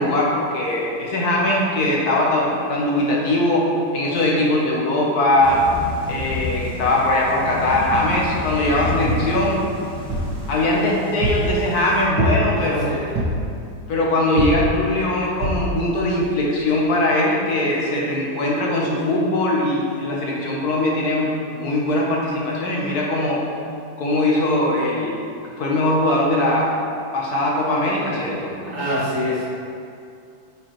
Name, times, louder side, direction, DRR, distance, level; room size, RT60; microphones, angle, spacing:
voice 1, 0.0-5.7 6.1-9.6 10.5-12.9 13.9-23.5 24.0-25.2 25.6-26.8 27.1-28.5, left 1 dB, 65° left, -3 dB, 1.4 m, -21 dB
Thunder / Rain, 5.4-12.0, left 2 dB, 5° left, 0.8 m, -30 dB
sound 1, 10.1-10.4 11.2-11.5 12.2-12.6 13.2-13.5 14.4-14.7 15.4-15.7 16.3-16.4 16.6-16.7, right 1 dB, 75° right, 1.9 m, -22 dB
voice 2, 12.5-13.2 28.6-29.5, equal, 50° right, -7 dB, 1.7 m, -26 dB
8.7 x 5.1 x 3.1 m, 2.4 s
omnidirectional pair, 1.9 m